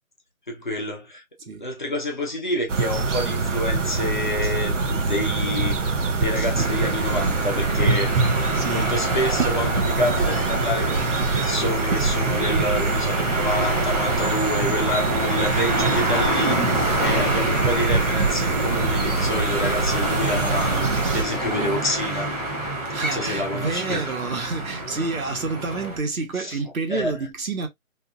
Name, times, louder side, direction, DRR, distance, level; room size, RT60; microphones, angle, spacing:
voice 1, 0.5-1.2 1.6-5.8 6.2-22.3 23.1-24.0 26.4-26.6 26.9-27.2, left 1 dB, 35° left, 0.7 m, -28 dB
sound 1, 2.7-21.2, right 4 dB, 60° right, 0.7 m, -24 dB
sound 2, 6.5-26.0, right 1 dB, 30° right, 0.8 m, -27 dB
voice 2, 8.5-8.9 21.0-21.9 22.9-27.7, right 4 dB, 80° right, 1.1 m, -29 dB
2.6 x 2.4 x 2.4 m
hypercardioid pair, 175°, 41 cm